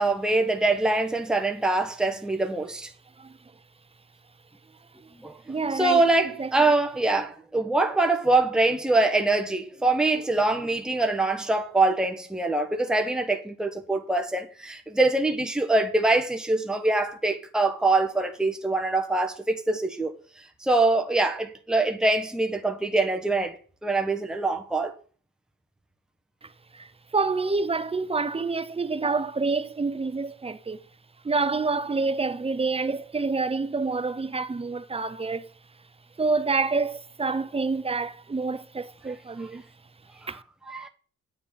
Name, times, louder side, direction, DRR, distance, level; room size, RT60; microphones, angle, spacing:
voice 1, 0.0-2.9 5.1-5.4 5.7-20.1 20.6-24.9 40.2-40.3 40.7-40.9, right 2 dB, ahead, 1.2 m, -24 dB
voice 2, 5.5-6.0 6.4-6.5 26.4-30.8 31.2-35.5 36.2-39.6 40.3-40.4, right 4 dB, 20° right, 0.8 m, -27 dB
8.7 x 7.1 x 5.2 m
cardioid pair, 90°, 30 cm